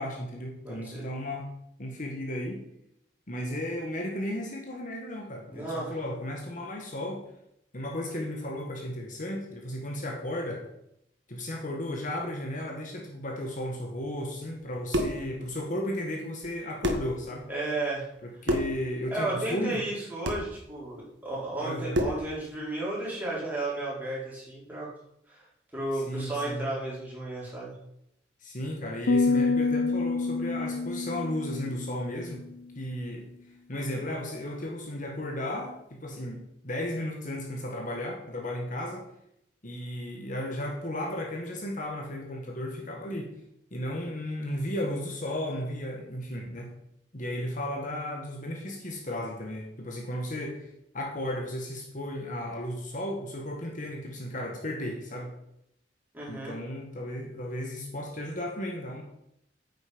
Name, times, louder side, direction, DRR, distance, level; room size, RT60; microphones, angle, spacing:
voice 1, 0.0-1.5 1.8-2.6 3.3-7.2 7.7-10.7 11.3-17.5 18.2-19.8 21.6-22.0 25.9-26.7 28.4-32.5 32.8-33.3 33.7-39.1 39.6-43.3 43.7-46.7 47.1-55.4 56.3-59.0, left 1 dB, 45° left, 0 dB, 1.7 m, -34 dB
voice 2, 0.6-1.0 5.5-6.0 17.5-18.1 19.1-24.9 25.3-25.5 25.7-27.7 56.1-56.5, right 2 dB, 10° right, -7 dB, 4.7 m, -33 dB
sound 1, 14.6-15.3 16.4-16.5 16.8-17.2 18.4-18.8 20.2-20.5 21.9-22.3, equal, 70° right, 1.7 m, -28 dB
sound 2, 29.1-32.5, left 3 dB, 80° left, 0.7 m, -27 dB
9.3 x 8.4 x 5.4 m, 0.78 s
head